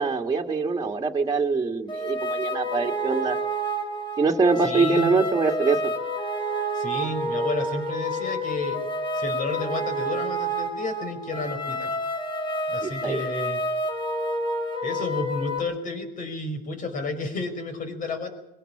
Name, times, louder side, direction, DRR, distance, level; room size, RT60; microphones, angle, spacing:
voice 1, 0.0-3.4 4.2-5.8 12.8-13.2, right 4 dB, 20° right, 1 dB, 2.0 m, -23 dB
sound 1, 1.9-15.6, right 1 dB, 30° left, 4.9 m, -29 dB
voice 2, 4.6-5.2 6.7-8.8 9.1-12.0 12.7-13.6 14.8-18.3, left 3 dB, 50° left, 7 dB, 5.4 m, -31 dB
22.0 x 18.0 x 8.7 m, 0.91 s
cardioid pair, 110°, 17 cm